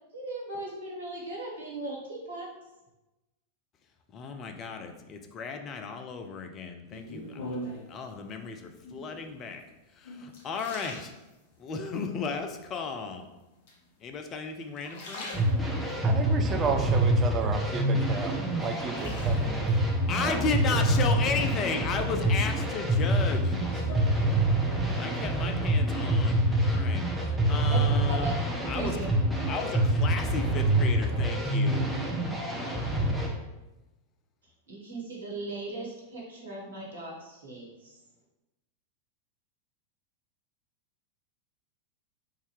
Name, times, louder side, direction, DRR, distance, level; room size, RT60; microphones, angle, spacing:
voice 1, 0.1-2.5 27.7-28.4 28.7-29.1 34.7-37.9, right 2 dB, 70° right, -3 dB, 1.3 m, -38 dB
voice 2, 4.1-7.5 7.9-9.6 10.0-11.1 11.6-13.2 14.0-15.3 20.1-23.6 25.0-28.4 28.6-29.0 29.5-31.9 32.7-32.9, left 5 dB, 30° left, 5 dB, 0.5 m, -34 dB
sound 1, 6.9-8.0 8.8-9.3 9.8-11.8 12.3-12.9 13.7-14.3 14.7-16.0 16.5-17.7 18.1-19.7 21.1-21.7 22.2-24.8 25.0-25.5, equal, 50° left, 0.9 m, -43 dB
sound 2, 15.3-33.3, right 1 dB, ahead, 0.9 m, -26 dB
voice 3, 16.0-18.3 18.6-19.7 20.2-20.5, right 5 dB, 25° right, 6 dB, 0.5 m, -32 dB
3.7 x 2.7 x 4.6 m, 1.0 s
figure-of-eight pair, 90°, 0 cm